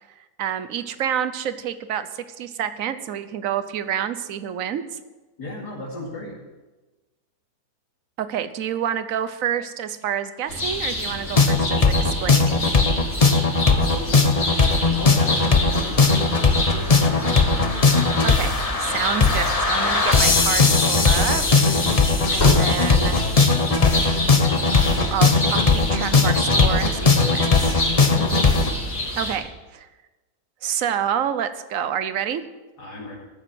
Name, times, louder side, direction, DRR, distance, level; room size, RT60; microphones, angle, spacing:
voice 1, 0.4-4.9 8.2-12.7 18.2-18.5 18.8-21.4 21.7-22.0 22.3-23.3 25.1-27.8 29.2-29.9 30.6-32.4, right 9 dB, 60° right, 12 dB, 1.1 m, -28 dB
voice 2, 5.4-6.3 13.6-14.2 14.9-16.4 28.0-28.5 32.8-33.2, left 2 dB, 85° left, -6 dB, 3.3 m, -35 dB
sound 1, 10.5-29.4, left 1 dB, 70° left, 3.9 m, -28 dB
sound 2, 11.4-28.7, left 4 dB, 30° left, 0.9 m, -18 dB
sound 3, 19.7-20.3 22.0-23.2, left 1 dB, 50° left, 4.1 m, -28 dB
14.0 x 7.3 x 7.7 m, 1.2 s
omnidirectional pair, 1.7 m